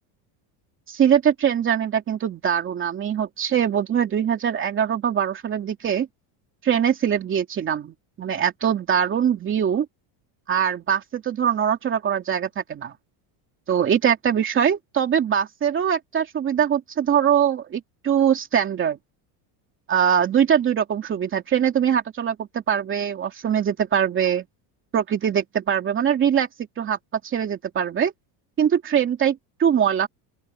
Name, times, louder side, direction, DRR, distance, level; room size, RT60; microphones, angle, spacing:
voice 1, 0.9-6.1 6.6-9.9 10.5-12.9 13.7-19.0 19.9-24.4 24.9-26.5 26.8-27.0 27.2-28.1 28.6-30.1, right 8 dB, 25° right, 2.7 m, -22 dB
open air
cardioid pair, 165°, 47 cm